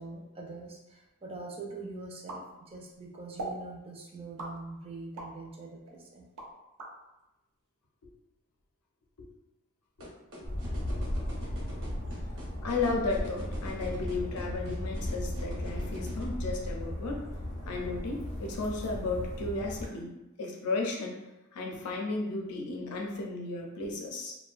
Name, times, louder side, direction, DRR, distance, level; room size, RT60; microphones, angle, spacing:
voice 1, 0.0-6.3, right 3 dB, 25° right, -1 dB, 0.4 m, -43 dB
sound 1, 2.3-3.0 3.4-3.6 4.4-5.4 5.9-6.9, right 2 dB, 90° right, 0.5 m, -40 dB
sound 2, 10.0-16.2, left 1 dB, 60° right, 0.8 m, -45 dB
sound 3, 10.4-19.9, left 1 dB, 30° left, 0.5 m, -36 dB
voice 2, 12.6-17.3 17.7-20.1 20.4-21.2 21.5-24.3, left 3 dB, 85° left, 1 dB, 0.5 m, -34 dB
2.4 x 2.1 x 2.4 m, 0.97 s
head